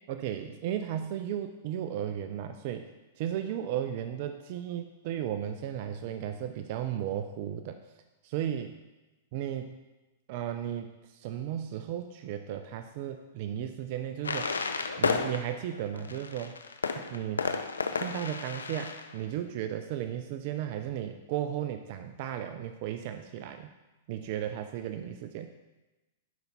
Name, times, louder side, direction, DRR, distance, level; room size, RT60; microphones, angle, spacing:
voice 1, 0.1-2.9 3.2-7.8 8.2-8.7 9.3-9.8 10.3-14.5 15.0-16.5 16.9-17.6 17.9-23.7 24.1-25.5, right 10 dB, 50° right, 8 dB, 0.5 m, -35 dB
sound 1, 14.2-19.2, left 4 dB, 90° left, 0.6 m, -32 dB
11.0 x 5.6 x 4.1 m, 1.1 s
hypercardioid pair, 110°, 0 cm